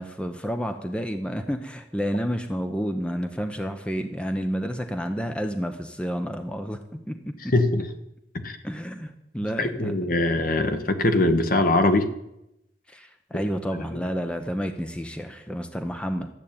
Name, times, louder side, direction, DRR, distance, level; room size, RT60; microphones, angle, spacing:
voice 1, 0.0-7.2 7.4-7.5 8.6-10.5 12.9-16.3, equal, 5° left, 6 dB, 0.8 m, -30 dB
voice 2, 7.5-7.8 8.4-8.6 9.6-12.1, left 2 dB, 50° left, 7 dB, 1.3 m, -22 dB
13.5 x 8.2 x 8.8 m, 0.86 s
head